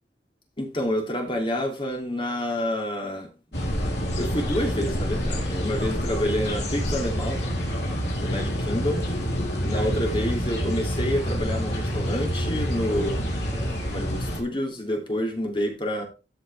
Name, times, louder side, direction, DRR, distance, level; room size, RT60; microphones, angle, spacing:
voice 1, 0.6-3.7 4.2-7.6 8.2-9.1 9.6-16.0, equal, 30° left, 3.0 m, -28 dB
sound 1, 3.5-14.4, equal, 70° left, 3.8 m, -27 dB
13.5 x 6.3 x 3.6 m
head